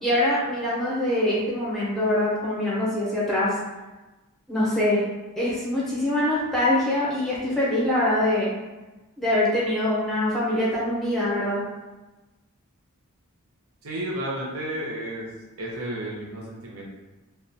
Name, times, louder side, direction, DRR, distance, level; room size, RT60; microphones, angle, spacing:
voice 1, 0.0-3.5 4.5-5.1 5.4-8.5 9.2-11.6, left 1 dB, ahead, -8 dB, 0.6 m, -24 dB
voice 2, 13.8-15.3 15.6-16.8, right 1 dB, 65° right, -3 dB, 0.6 m, -32 dB
2.3 x 2.1 x 2.6 m, 1.1 s
head